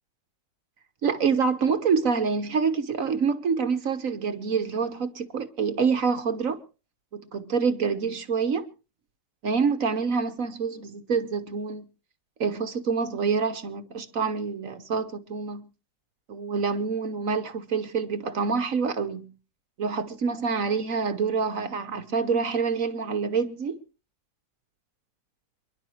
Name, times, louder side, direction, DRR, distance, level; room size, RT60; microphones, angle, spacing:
voice 1, 1.0-6.6 7.1-8.7 9.4-11.9 12.4-15.7 16.3-19.3 19.8-23.8, right 5 dB, 50° right, 1.3 m, -26 dB
28.0 x 11.0 x 3.0 m
omnidirectional pair, 2.0 m